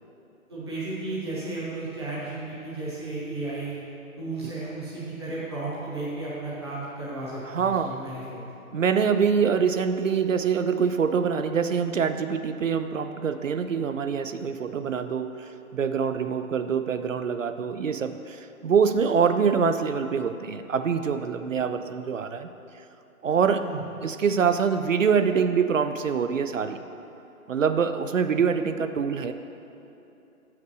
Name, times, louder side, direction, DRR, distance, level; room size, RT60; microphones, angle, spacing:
voice 1, 0.5-3.8 4.2-8.4 23.6-23.8, right 2 dB, 20° right, -10 dB, 1.0 m, -34 dB
voice 2, 7.5-8.0 8.7-22.5 23.2-23.6 24.0-26.8 27.5-29.3, right 6 dB, 65° right, 9 dB, 0.5 m, -25 dB
6.5 x 5.8 x 6.1 m, 2.9 s
hypercardioid pair, 180°, 43 cm